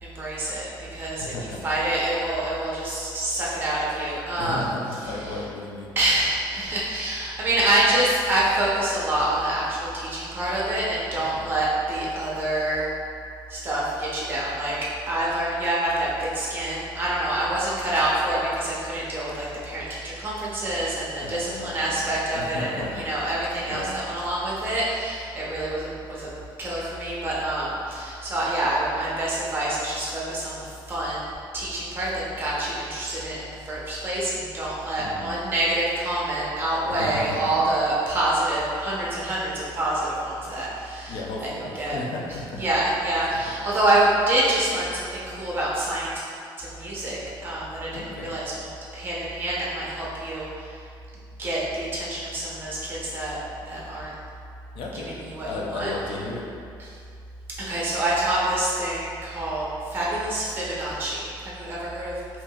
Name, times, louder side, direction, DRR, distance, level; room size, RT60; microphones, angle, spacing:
voice 1, 0.0-1.3 1.6-4.6 6.0-12.9 13.5-14.8 15.1-26.3 26.6-42.0 42.6-46.2 46.6-48.7 48.9-50.7 51.4-54.1 55.2-55.9 57.6-62.2, right 1 dB, 25° right, -6 dB, 0.6 m, -26 dB
voice 2, 1.2-1.6 4.4-5.9 11.3-11.5 21.2-23.1 23.7-23.9 35.0-35.3 36.9-37.7 41.1-42.6 43.3-43.5 47.9-48.3 54.7-56.5, left 2 dB, 80° left, -1 dB, 0.5 m, -34 dB
3.4 x 2.9 x 2.3 m, 2.4 s
cardioid pair, 175°, 8 cm